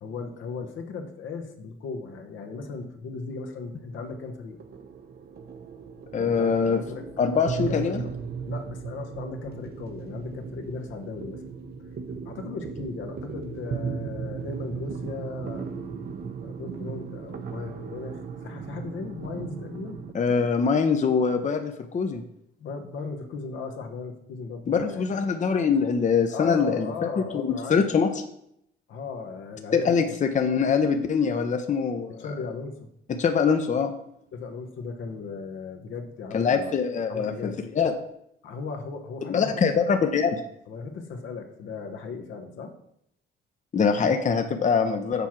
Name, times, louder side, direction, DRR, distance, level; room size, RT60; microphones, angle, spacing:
voice 1, 0.0-4.6 6.1-7.1 7.4-8.1 8.5-11.4 12.2-15.7 16.4-20.0 22.6-25.2 26.3-27.9 28.9-30.2 32.2-32.9 34.3-36.7 37.1-37.6 38.4-39.6 40.7-42.7, left 4 dB, 75° left, 5 dB, 1.2 m, -37 dB
sound 1, 3.3-20.1, right 6 dB, 55° right, 0.8 m, -37 dB
voice 2, 6.1-6.8 7.2-8.0 20.1-22.2 24.7-28.1 29.7-32.3 33.1-33.9 36.3-37.9 39.3-40.4 43.7-45.3, left 6 dB, 40° left, 6 dB, 0.7 m, -23 dB
6.9 x 4.7 x 5.9 m, 0.76 s
cardioid pair, 90°, 20 cm